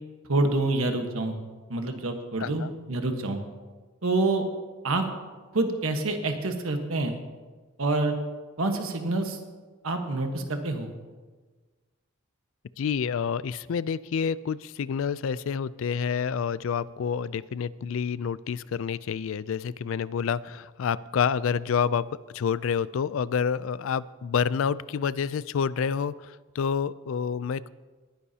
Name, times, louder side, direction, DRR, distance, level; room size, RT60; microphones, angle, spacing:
voice 1, 0.3-1.4 1.7-3.4 4.0-4.4 4.8-5.0 5.5-7.2 7.8-8.1 8.6-9.4 9.8-10.9, right 2 dB, 85° right, 5 dB, 1.3 m, -27 dB
voice 2, 12.8-27.7, left 6 dB, 70° left, 18 dB, 0.4 m, -28 dB
19.5 x 10.0 x 2.8 m, 1.3 s
head